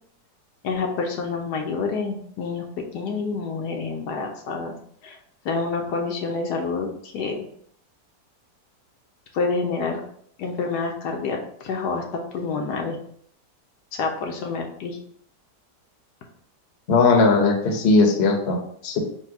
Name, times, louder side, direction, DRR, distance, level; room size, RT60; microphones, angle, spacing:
voice 1, 0.6-4.7 5.0-5.2 5.4-7.5 9.3-10.0 10.4-12.0 12.3-13.0 13.9-15.0, left 4 dB, 75° left, 2 dB, 1.2 m, -28 dB
voice 2, 16.9-19.0, left 3 dB, 50° left, 1 dB, 0.9 m, -18 dB
4.3 x 2.2 x 4.6 m, 0.65 s
omnidirectional pair, 1.8 m